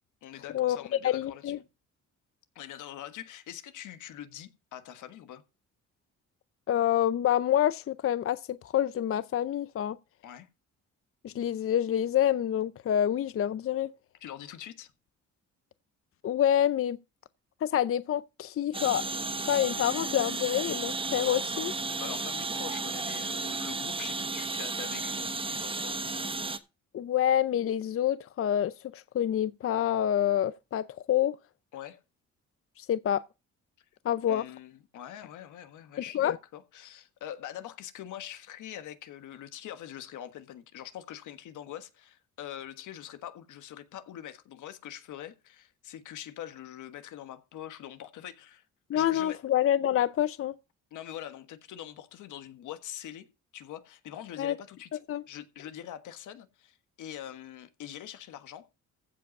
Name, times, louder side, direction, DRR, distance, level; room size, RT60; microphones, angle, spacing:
voice 1, 0.2-1.7 2.5-5.4 10.2-10.5 14.2-14.9 22.0-26.0 31.7-32.0 34.3-48.6 48.9-49.4 50.9-54.9 55.3-58.7, left 11 dB, 80° left, 1.5 m, -44 dB
voice 2, 1.0-1.6 6.7-10.0 11.2-13.9 16.2-17.0 17.6-19.0 19.5-21.7 26.9-31.4 32.8-33.2 34.0-34.4 36.1-36.4 48.9-50.5 54.4-54.5 55.1-55.2, left 11 dB, 50° left, 0.6 m, -27 dB
sound 1, 18.7-26.6, right 3 dB, 20° right, 1.1 m, -33 dB
15.0 x 5.2 x 5.3 m
cardioid pair, 90°, 30 cm